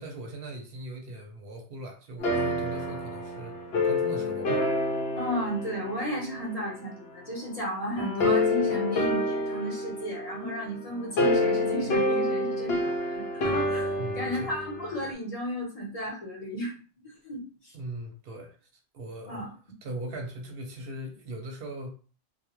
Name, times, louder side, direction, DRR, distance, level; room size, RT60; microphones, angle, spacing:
voice 1, 0.0-3.5 3.8-4.6 14.0-14.5 17.7-18.6 18.9-19.5 19.8-21.9, right 1 dB, 60° right, 3 dB, 0.7 m, -39 dB
sound 1, 2.2-6.8 8.0-15.1, left 2 dB, 65° left, 0.8 m, -28 dB
voice 2, 5.2-16.7 17.2-17.7 19.3-19.5, equal, 35° left, -4 dB, 0.9 m, -34 dB
2.3 x 2.2 x 2.9 m, 0.37 s
omnidirectional pair, 1.2 m